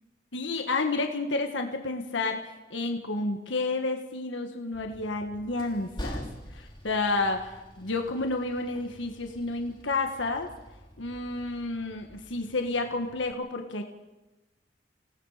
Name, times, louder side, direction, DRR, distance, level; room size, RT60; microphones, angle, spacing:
voice 1, 0.3-6.2 6.5-10.5 11.0-13.8, left 3 dB, 80° left, 4 dB, 1.5 m, -30 dB
Train, 4.7-13.3, equal, 25° left, 3.3 m, -45 dB
29.0 x 18.0 x 5.0 m, 1.1 s
head